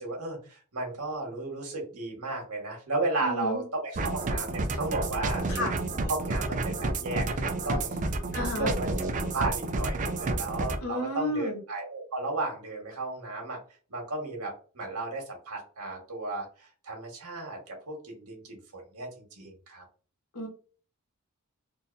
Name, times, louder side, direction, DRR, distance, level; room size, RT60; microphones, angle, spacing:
voice 1, 0.0-5.4 6.1-8.0 8.5-8.9 9.2-13.6 13.9-19.8, right 2 dB, 80° right, 0 dB, 1.5 m, -34 dB
voice 2, 3.2-3.6 5.5-5.7 8.3-8.7 10.8-11.6 20.3-20.5, left 1 dB, 75° left, 0 dB, 1.4 m, -31 dB
sound 1, 3.9-10.8, right 2 dB, 35° right, 0.4 m, -30 dB
3.9 x 2.6 x 2.6 m, 0.39 s
head